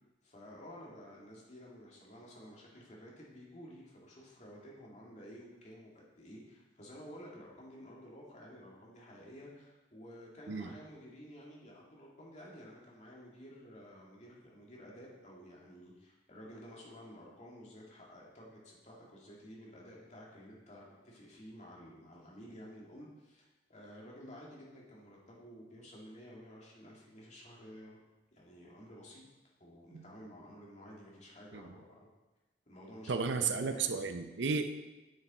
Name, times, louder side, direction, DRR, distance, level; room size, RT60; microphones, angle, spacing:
voice 1, 0.2-28.0 28.3-29.2 29.6-32.1 32.7-33.9, equal, 40° left, -4 dB, 2.1 m, -52 dB
voice 2, 33.1-34.7, right 5 dB, 80° right, 8 dB, 0.6 m, -33 dB
8.7 x 6.7 x 4.2 m, 1.1 s
head